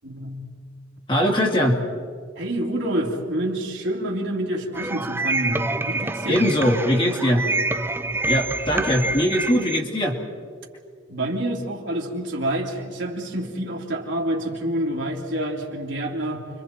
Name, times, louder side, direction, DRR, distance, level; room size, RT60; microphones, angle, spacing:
voice 1, 0.0-0.5 2.4-6.4 11.1-16.5, right 1 dB, 65° right, -1 dB, 2.9 m, -27 dB
voice 2, 1.1-1.8 6.3-7.5 8.3-10.2, equal, 25° left, 0 dB, 2.4 m, -21 dB
sound 1, 4.7-9.8, right 2 dB, 10° right, 0.6 m, -27 dB
29.5 x 24.5 x 4.4 m, 2.1 s
head